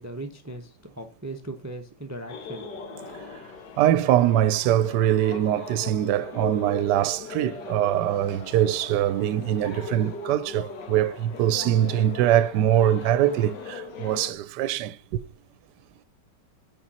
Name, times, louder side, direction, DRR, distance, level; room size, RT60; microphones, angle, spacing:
voice 1, 0.0-2.8, right 2 dB, 15° right, 0.6 m, -38 dB
sound 1, 2.3-14.3, left 5 dB, 80° left, 1.8 m, -39 dB
voice 2, 3.8-15.2, right 12 dB, 75° right, 1.1 m, -23 dB
8.9 x 5.5 x 4.2 m
omnidirectional pair, 1.9 m